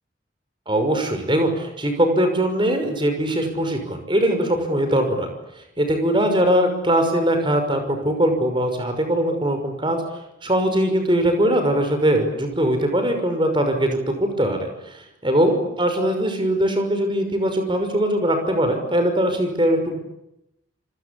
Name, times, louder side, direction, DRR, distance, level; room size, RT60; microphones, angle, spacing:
voice 1, 0.7-5.3 5.8-10.0 10.4-14.7 15.2-20.0, right 1 dB, 25° right, 6 dB, 5.9 m, -21 dB
27.5 x 25.5 x 8.7 m, 0.85 s
head